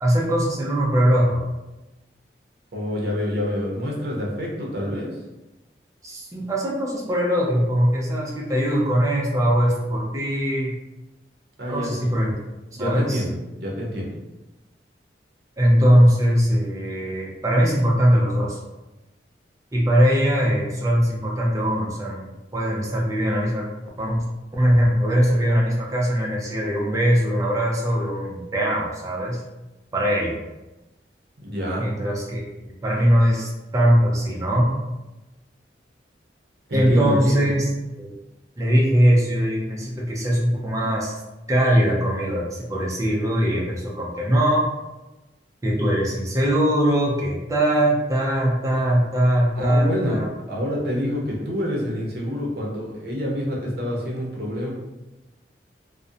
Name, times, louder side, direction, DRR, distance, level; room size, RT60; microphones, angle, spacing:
voice 1, 0.0-1.4 6.0-10.8 11.7-12.3 12.8-13.2 15.6-18.6 19.7-23.7 24.0-24.3 24.5-29.4 29.9-30.4 31.8-34.7 36.7-37.7 38.0-38.1 38.6-41.2 41.5-44.7 45.6-50.3, equal, 20° right, -4 dB, 0.4 m, -21 dB
voice 2, 2.7-5.2 11.6-11.9 12.7-13.3 13.6-14.1 31.4-31.9 36.7-37.5 49.6-50.2 50.5-54.7, equal, 60° right, -2 dB, 0.6 m, -27 dB
2.4 x 2.0 x 2.6 m, 1.0 s
head